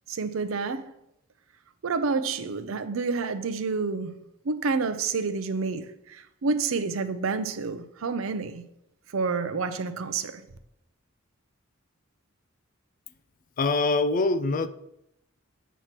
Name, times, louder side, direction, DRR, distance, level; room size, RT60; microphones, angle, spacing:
voice 1, 0.1-0.9 1.8-4.2 4.4-8.6 9.1-10.4, right 4 dB, 75° right, 0.5 m, -29 dB
voice 2, 13.6-14.7, left 3 dB, 40° left, 0.3 m, -24 dB
8.0 x 3.0 x 5.9 m
head